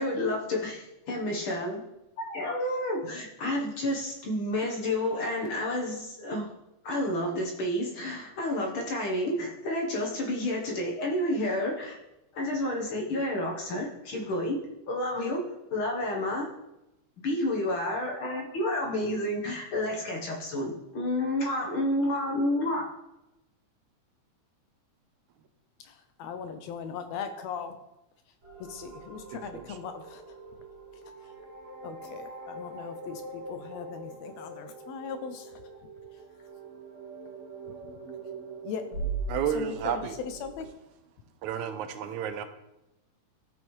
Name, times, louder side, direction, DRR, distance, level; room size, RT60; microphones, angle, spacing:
voice 1, 0.0-1.8 2.2-6.5 6.8-12.0 12.3-14.6 14.9-15.4 15.7-16.5 17.2-22.9, left 1 dB, 60° left, -1 dB, 1.5 m, -30 dB
voice 2, 26.2-27.7 28.7-30.2 31.8-35.5 38.6-38.8 39.5-40.0 40.4-40.7, left 6 dB, 75° left, 8 dB, 1.7 m, -39 dB
sound 1, 28.4-40.7, right 3 dB, 65° right, 3.6 m, -41 dB
voice 3, 29.3-29.8 39.3-40.2 41.4-42.4, right 8 dB, 90° right, 9 dB, 2.1 m, -32 dB
13.5 x 5.3 x 3.1 m, 0.92 s
omnidirectional pair, 3.3 m